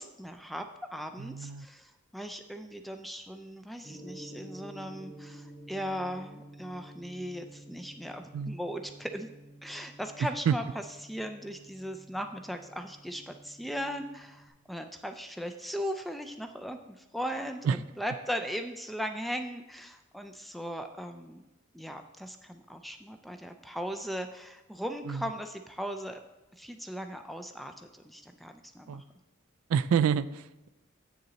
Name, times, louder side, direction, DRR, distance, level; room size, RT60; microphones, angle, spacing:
voice 1, 0.0-9.3 9.6-21.4 21.7-26.2 26.5-29.1, equal, ahead, 6 dB, 0.3 m, -38 dB
voice 2, 1.2-1.7 8.3-8.6 10.5-10.6 17.7-17.8 25.1-25.2 28.9-29.0 29.7-30.7, right 7 dB, 85° right, 16 dB, 0.3 m, -28 dB
Gong, 3.8-14.5, right 1 dB, 35° left, 2.5 m, -50 dB
7.6 x 6.7 x 4.0 m, 1.0 s
head